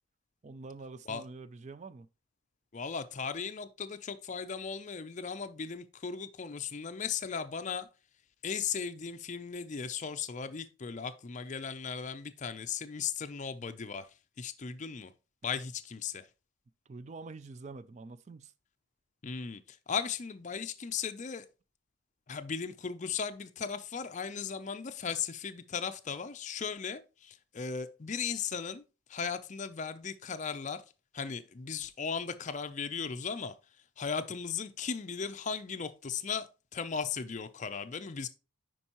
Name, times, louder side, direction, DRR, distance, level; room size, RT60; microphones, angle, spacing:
voice 1, 0.4-2.1 16.9-18.5, right 3 dB, 30° right, 0.3 m, -46 dB
voice 2, 2.7-7.9 8.4-14.1 14.4-15.1 15.4-16.3 19.2-21.5 22.3-28.8 29.1-30.8 31.1-33.5 34.0-38.3, left 6 dB, 35° left, 0.4 m, -37 dB
9.8 x 4.6 x 2.9 m
head